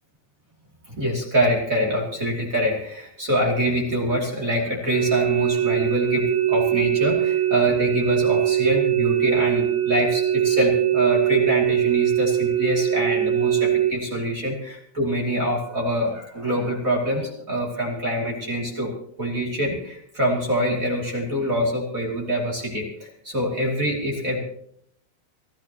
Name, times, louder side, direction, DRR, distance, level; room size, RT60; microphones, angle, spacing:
voice 1, 0.9-18.9 19.2-24.4, equal, 25° right, -2 dB, 2.4 m, -25 dB
sound 1, 4.9-13.9, right 12 dB, 75° right, 2.5 m, -22 dB
27.5 x 12.5 x 3.0 m, 0.68 s
omnidirectional pair, 4.6 m